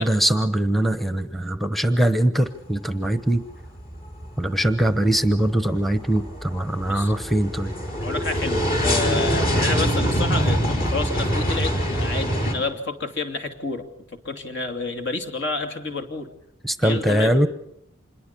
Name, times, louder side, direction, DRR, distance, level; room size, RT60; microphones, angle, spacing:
voice 1, 0.0-3.4 4.4-7.7 16.6-17.5, right 1 dB, ahead, 11 dB, 1.0 m, -22 dB
sound 1, 2.6-3.0 3.3-12.5, equal, 50° left, 5.3 m, -24 dB
voice 2, 8.0-13.8 14.1-16.3 16.8-17.5, left 3 dB, 65° left, 6 dB, 2.9 m, -29 dB
26.5 x 22.0 x 7.0 m, 0.76 s
head